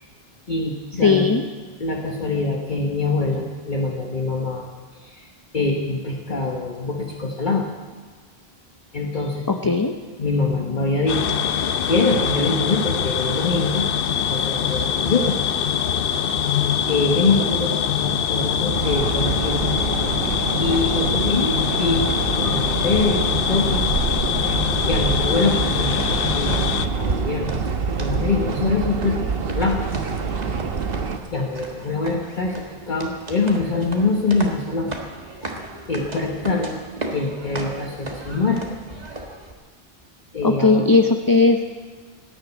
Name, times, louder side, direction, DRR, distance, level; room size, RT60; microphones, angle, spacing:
voice 1, 0.5-1.3 1.8-4.7 4.9-5.3 5.5-7.7 8.9-9.7 10.2-11.4 11.9-13.9 14.3-15.4 16.9-19.6 20.6-22.1 22.4-23.8 24.9-27.5 27.9-29.2 29.5-29.8 31.3-34.9 35.4-35.5 35.9-36.8 37.1-38.6 40.3-40.8, left 3 dB, 50° left, -1 dB, 1.4 m, -24 dB
voice 2, 1.0-1.4 9.5-9.9 40.4-41.6, left 3 dB, 25° left, 5 dB, 0.6 m, -17 dB
sound 1, 11.1-26.9, left 8 dB, 65° left, 0.9 m, -23 dB
sound 2, 18.7-31.2, right 5 dB, 65° right, 1.2 m, -26 dB
sound 3, 25.4-39.5, right 2 dB, 40° right, 1.8 m, -37 dB
16.5 x 10.5 x 8.3 m, 1.4 s
omnidirectional pair, 1.0 m